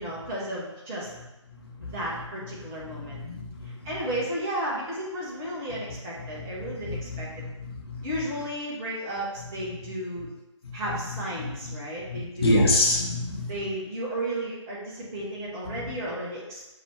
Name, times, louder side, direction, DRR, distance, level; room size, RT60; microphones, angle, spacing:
voice 1, 0.0-1.1 1.8-3.2 3.6-7.3 8.0-10.3 10.7-12.8 13.5-16.7, right 1 dB, 10° right, -5 dB, 0.4 m, -33 dB
voice 2, 1.1-4.0 5.7-5.8 6.2-8.3 9.4-10.3 10.6-11.8 12.0-13.7 15.7-15.9, left 1 dB, 50° left, -2 dB, 1.1 m, -30 dB
5.5 x 2.6 x 3.2 m, 1.0 s
figure-of-eight pair, 150°, 16 cm